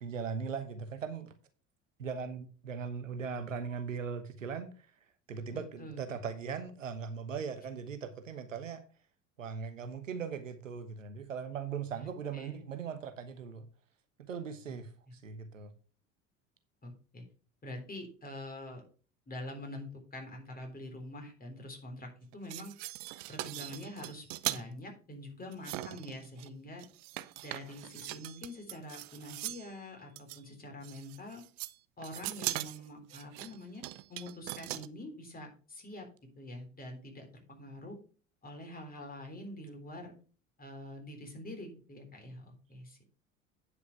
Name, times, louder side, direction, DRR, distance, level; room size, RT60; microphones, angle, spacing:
voice 1, 0.0-1.3 2.0-4.9 5.3-8.8 9.4-13.7 14.2-15.7, right 6 dB, 85° right, 1.2 m, -39 dB
voice 2, 5.5-6.0 11.9-12.6 14.7-14.8 16.8-17.2 17.6-18.8 19.3-22.7 23.3-26.8 27.4-31.4 32.0-33.8 34.1-36.1 36.4-38.0 38.4-40.1 40.6-43.0, left 1 dB, 25° left, 3.7 m, -45 dB
sound 1, 22.3-24.6 25.5-26.5 26.8-29.7 30.2-30.4 30.8-31.7 32.0-34.9, right 18 dB, 55° right, 0.7 m, -40 dB
9.7 x 5.9 x 4.8 m
figure-of-eight pair, 70°, 38 cm